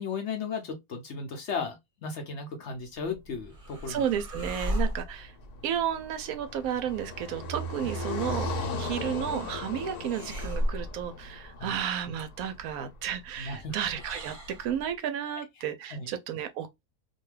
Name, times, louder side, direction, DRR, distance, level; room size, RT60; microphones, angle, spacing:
voice 1, 0.0-4.0 11.6-11.7 13.4-13.8 15.9-16.1, left 4 dB, 60° left, 0.8 m, -35 dB
sound 1, 2.9-14.9, equal, 40° right, 0.9 m, -38 dB
voice 2, 3.9-5.3 5.6-16.9, right 9 dB, 70° right, 0.9 m, -32 dB
Car passing by, 5.3-12.5, left 2 dB, 80° left, 1.2 m, -37 dB
2.6 x 2.3 x 3.1 m
omnidirectional pair, 1.6 m